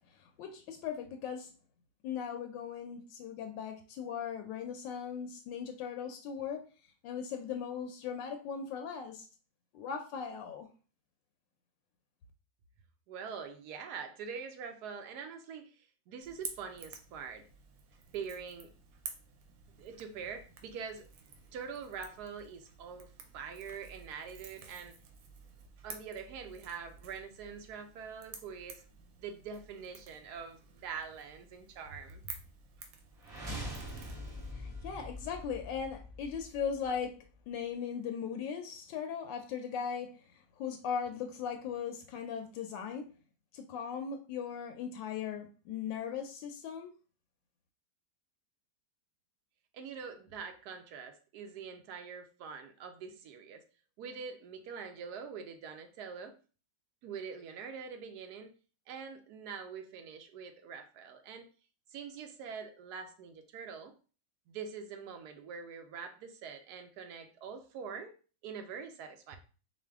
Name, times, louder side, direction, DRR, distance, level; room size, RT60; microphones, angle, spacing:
voice 1, 0.2-1.5 2.0-6.6 7.0-9.3 9.7-10.7 34.5-37.2 37.5-40.1 40.6-43.1 43.5-46.9, left 7 dB, 80° left, 5 dB, 1.2 m, -38 dB
voice 2, 13.1-17.5 18.1-18.7 19.8-21.0 21.5-24.9 25.8-28.8 29.2-32.2 49.7-53.6 54.0-56.4 57.0-58.5 58.9-61.4 61.9-63.9 64.5-68.1 68.4-69.4, right 6 dB, 70° right, 6 dB, 1.0 m, -44 dB
Crackle / Crack, 16.2-34.5, right 6 dB, 85° right, 1.4 m, -51 dB
sound 1, 33.2-37.2, equal, 40° right, 1.4 m, -43 dB
4.9 x 2.2 x 3.4 m, 0.37 s
omnidirectional pair, 2.0 m